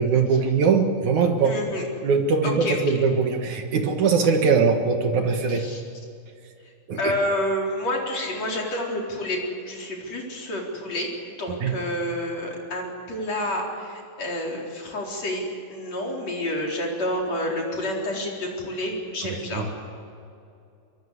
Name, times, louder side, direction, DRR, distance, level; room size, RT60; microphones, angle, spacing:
voice 1, 0.0-1.6 2.0-5.6 6.9-7.1 11.6-11.7 19.2-19.7, right 5 dB, 55° right, 4 dB, 2.3 m, -21 dB
voice 2, 1.4-1.8 2.4-3.0 5.5-5.8 6.6-9.4 9.7-11.1 11.4-19.7, left 1 dB, 35° left, -1 dB, 4.9 m, -29 dB
23.5 x 23.0 x 8.2 m, 2.5 s
omnidirectional pair, 5.2 m